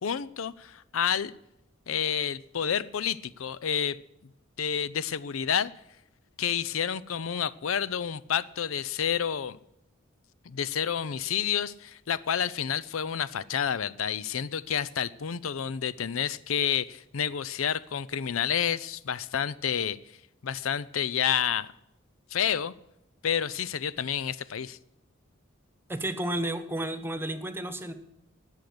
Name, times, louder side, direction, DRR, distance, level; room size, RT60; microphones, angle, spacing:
voice 1, 0.0-1.3 1.9-4.0 4.6-5.7 6.4-9.6 10.5-20.0 20.4-21.7 22.3-22.7 23.2-24.8, left 8 dB, 75° left, 17 dB, 0.5 m, -29 dB
voice 2, 25.9-27.9, right 1 dB, 10° right, 10 dB, 1.1 m, -32 dB
19.0 x 6.6 x 7.8 m, 0.84 s
head